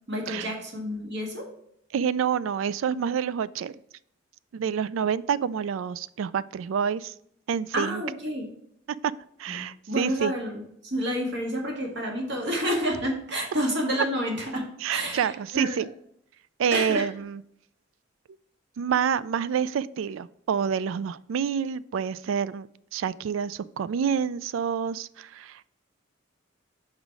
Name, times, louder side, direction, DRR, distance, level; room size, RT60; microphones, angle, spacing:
voice 1, 0.1-1.5 7.7-8.5 9.5-9.6 9.9-15.7 16.7-17.0, equal, 60° right, 0 dB, 1.9 m, -29 dB
voice 2, 1.9-3.7 4.5-7.1 7.5-8.0 9.4-10.3 14.8-15.9 16.6-17.4 18.8-22.7 22.9-25.6, right 7 dB, 75° right, 19 dB, 0.3 m, -28 dB
5.6 x 5.0 x 4.7 m, 0.72 s
head